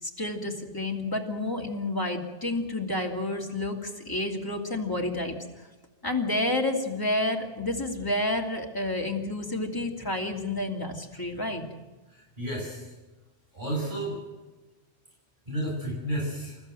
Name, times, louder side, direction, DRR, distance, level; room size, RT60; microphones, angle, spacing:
voice 1, 0.0-5.3 6.0-11.6, left 2 dB, 15° left, 1 dB, 2.9 m, -30 dB
voice 2, 12.1-13.0 13.5-14.2 15.4-16.6, right 1 dB, 40° right, -4 dB, 6.3 m, -32 dB
28.5 x 14.5 x 7.8 m, 1.2 s
omnidirectional pair, 1.3 m